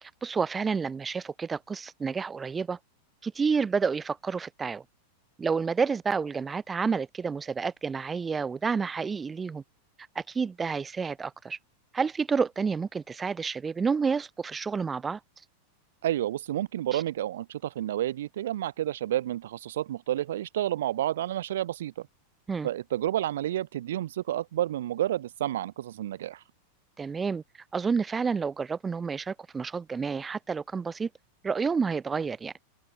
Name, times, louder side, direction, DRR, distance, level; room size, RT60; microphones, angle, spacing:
voice 1, 0.0-2.8 3.2-4.8 5.4-9.6 10.1-11.6 11.9-15.2 16.9-17.0 22.5-22.7 27.0-27.4 27.7-31.1 31.4-32.5, right 5 dB, 15° right, 3.1 m, -29 dB
voice 2, 16.0-22.1 22.6-26.4, right 12 dB, 60° right, 0.8 m, -30 dB
open air
figure-of-eight pair, 90°, 0 cm